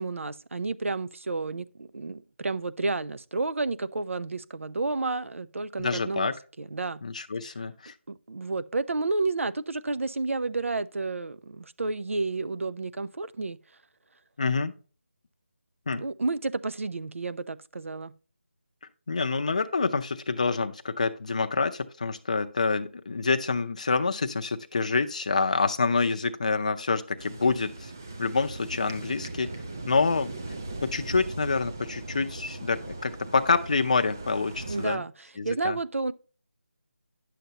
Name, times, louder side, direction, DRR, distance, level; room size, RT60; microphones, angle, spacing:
voice 1, 0.0-7.0 8.1-13.6 15.9-18.1 34.7-36.1, right 3 dB, 75° right, 0.6 m, -31 dB
voice 2, 5.8-6.3 7.0-7.9 14.4-14.7 15.9-16.0 19.1-27.9 28.2-29.5 29.9-30.3 30.9-35.0 35.4-35.8, left 4 dB, 30° left, 0.5 m, -27 dB
sound 1, 27.2-35.0, right 2 dB, 15° right, 0.3 m, -39 dB
10.0 x 6.8 x 2.9 m
figure-of-eight pair, 175°, 7 cm